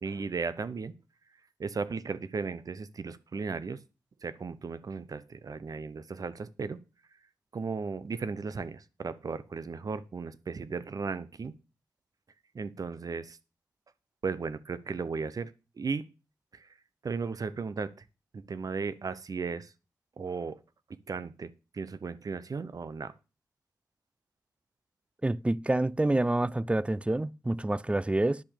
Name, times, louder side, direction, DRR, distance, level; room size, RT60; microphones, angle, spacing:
voice 1, 0.0-0.9 1.6-3.8 4.2-6.8 7.5-11.5 12.5-13.4 14.2-15.5 15.8-16.1 16.5-16.7 17.0-17.9 18.3-19.7 20.2-20.6 21.1-23.1, right 4 dB, 55° right, 0.9 m, -35 dB
voice 2, 25.2-28.4, right 2 dB, 15° right, 0.4 m, -27 dB
10.5 x 6.0 x 6.6 m
cardioid pair, 55°, 7 cm